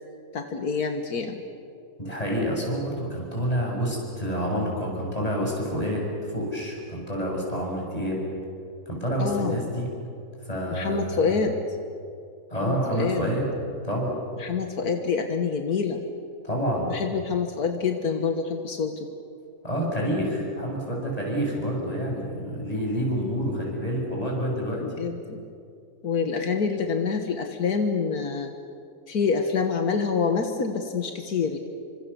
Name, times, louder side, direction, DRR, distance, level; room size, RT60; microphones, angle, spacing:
voice 1, 0.3-1.4 9.2-9.6 10.7-11.5 12.6-13.2 14.4-16.0 16.9-19.1 21.5-21.7 24.7-25.4 26.0-28.5 29.1-31.6, left 5 dB, 80° left, 5 dB, 2.0 m, -26 dB
voice 2, 2.0-8.2 8.9-9.9 10.4-11.3 12.5-13.5 13.8-14.1 16.4-16.9 19.6-24.8, equal, 25° left, -2 dB, 7.3 m, -28 dB
29.5 x 25.0 x 7.0 m, 2.5 s
omnidirectional pair, 1.6 m